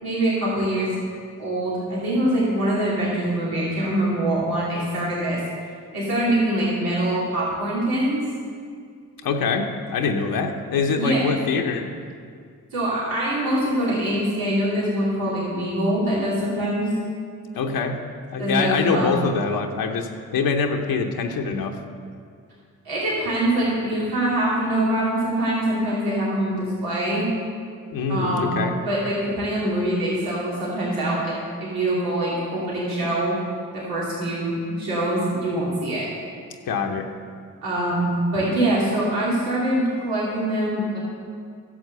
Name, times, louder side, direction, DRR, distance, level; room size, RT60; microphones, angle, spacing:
voice 1, 0.0-0.9 1.4-5.4 5.9-8.2 10.9-11.3 12.7-16.9 18.4-19.1 22.8-27.3 28.1-28.6 28.8-33.4 33.7-36.1 37.6-41.0, right 1 dB, 85° right, -7 dB, 2.8 m, -24 dB
voice 2, 9.2-11.9 17.5-18.0 18.3-20.1 20.3-21.8 27.9-28.7 36.7-37.1, left 5 dB, 80° left, 3 dB, 0.9 m, -24 dB
11.0 x 7.5 x 6.8 m, 2.2 s
supercardioid pair, 40°, 35 cm